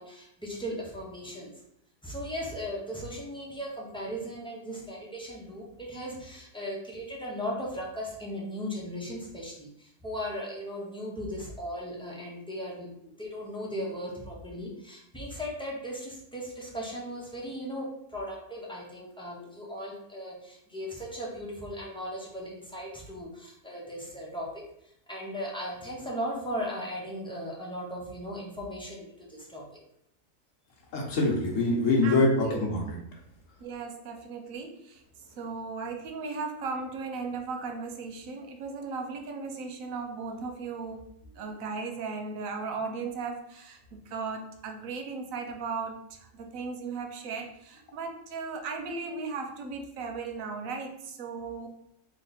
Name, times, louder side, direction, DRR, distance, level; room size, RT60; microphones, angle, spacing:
voice 1, 0.0-1.5 2.0-29.8, equal, 5° left, -4 dB, 0.8 m, -37 dB
voice 2, 30.9-33.0, left 2 dB, 70° left, 0 dB, 1.3 m, -24 dB
voice 3, 32.0-32.6 33.6-35.0 35.4-41.1 41.3-51.7, right 4 dB, 80° right, 4 dB, 1.1 m, -36 dB
3.2 x 3.1 x 4.0 m, 0.76 s
omnidirectional pair, 1.4 m